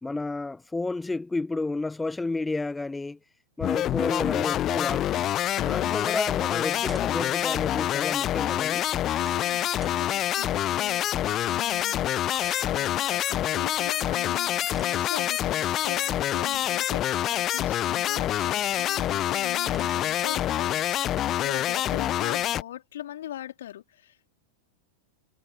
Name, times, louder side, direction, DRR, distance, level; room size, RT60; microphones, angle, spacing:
voice 1, 0.0-3.2 3.6-5.3 5.6-8.9, left 3 dB, 10° left, 1.1 m, -31 dB
sound 1, 3.6-22.6, left 12 dB, 30° left, 0.8 m, -26 dB
voice 2, 5.6-6.0 9.2-24.4, left 12 dB, 60° left, 3.8 m, -41 dB
sound 2, 6.6-7.7 8.2-8.3 9.1-10.0 11.8-11.9 12.3-13.4 14.6-15.9 16.4-16.9 17.4-18.1 18.4-19.1 19.4-20.5 21.2-21.4, right 5 dB, 15° right, 3.6 m, -48 dB
figure-of-eight pair, 90°, 0 cm